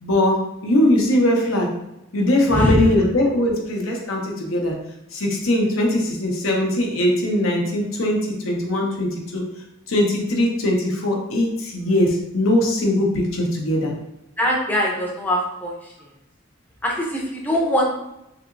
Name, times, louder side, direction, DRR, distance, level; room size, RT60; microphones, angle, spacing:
voice 1, 0.0-1.7 2.1-4.8 5.1-9.4 9.9-13.9, left 1 dB, 80° left, 0 dB, 0.7 m, -20 dB
voice 2, 2.5-2.8 14.4-15.9 16.8-17.9, equal, 10° left, -3 dB, 0.5 m, -22 dB
3.3 x 2.8 x 2.5 m, 0.88 s
head